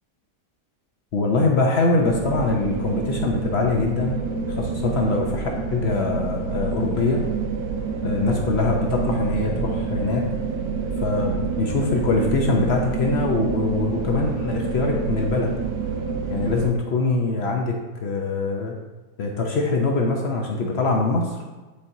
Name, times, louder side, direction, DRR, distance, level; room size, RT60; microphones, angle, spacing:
voice 1, 1.1-4.2 4.5-7.2 8.0-10.3 11.0-15.5 16.3-18.7 19.2-21.4, left 3 dB, 60° left, 1 dB, 0.6 m, -23 dB
sound 1, 2.0-16.7, right 4 dB, 90° right, 1.3 m, -27 dB
8.2 x 4.3 x 2.6 m, 1.2 s
omnidirectional pair, 1.8 m